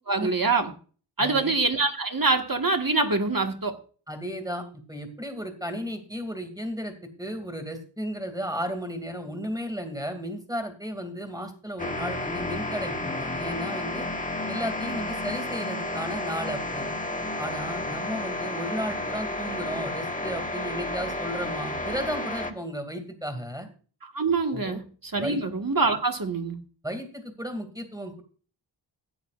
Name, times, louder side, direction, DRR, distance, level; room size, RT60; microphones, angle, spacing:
voice 1, 0.1-0.7 1.2-3.8 24.1-26.6, right 3 dB, 45° right, 5 dB, 1.7 m, -25 dB
voice 2, 1.2-1.5 4.1-14.1 14.5-16.9 17.4-23.7 24.5-24.8 25.2-25.4 26.8-28.2, equal, 10° right, 6 dB, 2.5 m, -34 dB
sound 1, 11.8-22.5, left 2 dB, 15° left, 1.4 m, -31 dB
15.5 x 9.4 x 2.5 m, 0.39 s
wide cardioid pair, 60°, 47 cm